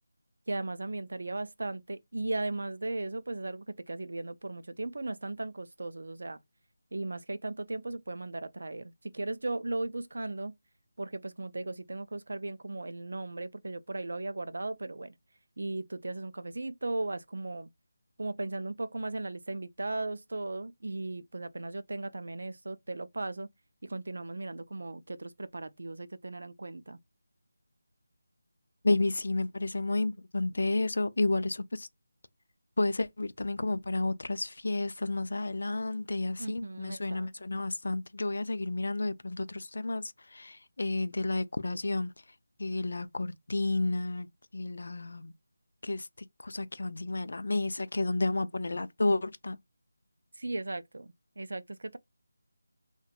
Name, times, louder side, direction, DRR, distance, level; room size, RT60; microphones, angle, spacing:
voice 1, 0.5-6.4 6.9-10.5 11.0-15.2 15.6-17.7 18.2-23.5 23.8-27.0 36.4-37.3 50.3-52.0, right 2 dB, 65° right, 0.3 m, -37 dB
voice 2, 28.8-31.9 32.8-42.1 42.6-44.3 44.5-45.3 45.8-49.6, left 2 dB, 55° left, 0.3 m, -31 dB
2.4 x 2.1 x 2.7 m
figure-of-eight pair, 175°, 0 cm